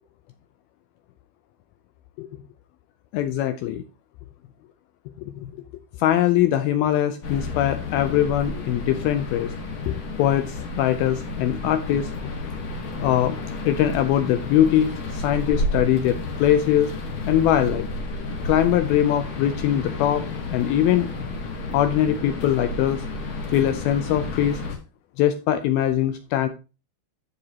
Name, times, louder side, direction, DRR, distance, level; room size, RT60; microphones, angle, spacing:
voice 1, 3.1-3.8 5.4-5.5 6.0-9.5 9.9-12.1 13.0-16.9 17.3-17.9 18.5-20.2 20.5-21.1 21.7-23.0 23.5-24.6 25.2-26.5, left 11 dB, 80° left, 9 dB, 2.2 m, -22 dB
sound 1, 7.2-24.7, left 2 dB, 60° left, 1.3 m, -31 dB
13.5 x 5.3 x 2.8 m, 0.30 s
omnidirectional pair, 4.8 m